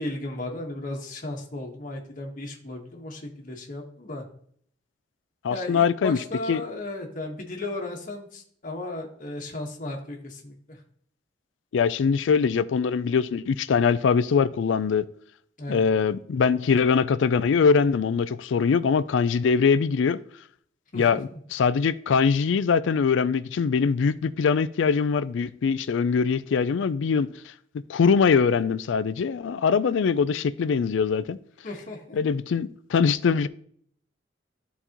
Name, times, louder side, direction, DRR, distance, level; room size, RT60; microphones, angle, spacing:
voice 1, 0.0-4.2 5.5-10.8 15.6-15.8 20.9-21.4 31.6-32.2, left 2 dB, 45° left, 1.3 m, -35 dB
voice 2, 5.4-6.2 6.5-6.6 11.7-15.0 15.7-20.2 20.9-27.3 27.9-31.4 32.2-33.5, left 5 dB, 75° left, 0.4 m, -22 dB
12.0 x 4.1 x 2.9 m
head